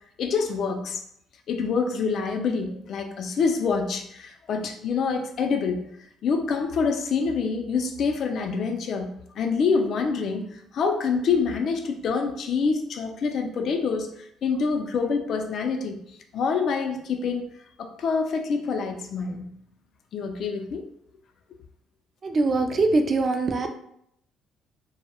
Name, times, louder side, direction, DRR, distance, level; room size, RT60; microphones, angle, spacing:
voice 1, 0.2-1.0 1.5-6.0 6.2-16.0 16.3-17.5 17.8-19.5 20.1-20.8, left 5 dB, 60° left, 4 dB, 0.4 m, -26 dB
voice 2, 22.2-23.7, right 3 dB, 40° right, 5 dB, 0.3 m, -22 dB
2.1 x 2.0 x 2.9 m, 0.72 s
cardioid pair, 100°, 0 cm